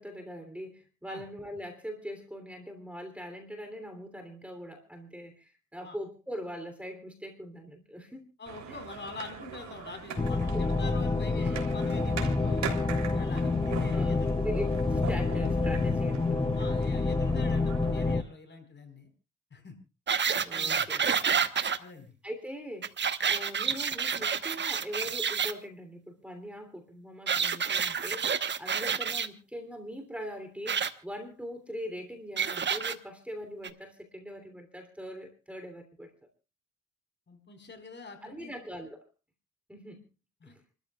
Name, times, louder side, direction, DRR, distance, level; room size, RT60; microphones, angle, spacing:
voice 1, 0.0-8.3 8.7-8.8 10.5-10.6 11.4-11.5 11.9-12.1 13.9-16.6 20.4-21.1 22.2-22.9 23.2-36.1 38.2-39.0 39.7-40.0 40.5-40.6, equal, 5° right, 6 dB, 3.1 m, -41 dB
voice 2, 8.4-12.8 13.1-14.4 16.6-19.1 19.5-19.7 20.5-20.9 21.8-22.1 37.3-38.5 40.4-40.5, left 3 dB, 40° left, 6 dB, 4.4 m, -45 dB
sound 1, 8.5-18.1, right 7 dB, 65° right, 3.3 m, -42 dB
sound 2, 10.2-18.2, left 3 dB, 15° left, 0.6 m, -28 dB
sound 3, 20.1-21.8 22.8-25.5 27.3-29.3 30.7-30.9 32.4-32.9 33.6-33.7, right 6 dB, 35° right, 1.1 m, -29 dB
29.0 x 13.5 x 2.4 m, 0.30 s
cardioid pair, 90°, 30 cm